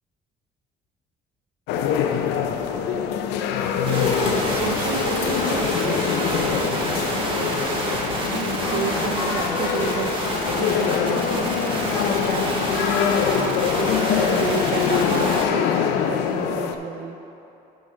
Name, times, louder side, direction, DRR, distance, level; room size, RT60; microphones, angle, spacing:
sound 1, 1.7-16.8, left 8 dB, 85° left, 0.5 m, -24 dB
sound 2, 3.8-15.4, right 1 dB, 30° right, 1.4 m, -28 dB
voice 1, 3.8-10.2 10.5-12.9 13.4-17.2, right 8 dB, 65° right, 7 dB, 0.6 m, -32 dB
6.4 x 6.2 x 5.1 m, 2.8 s
cardioid pair, 110°, 17 cm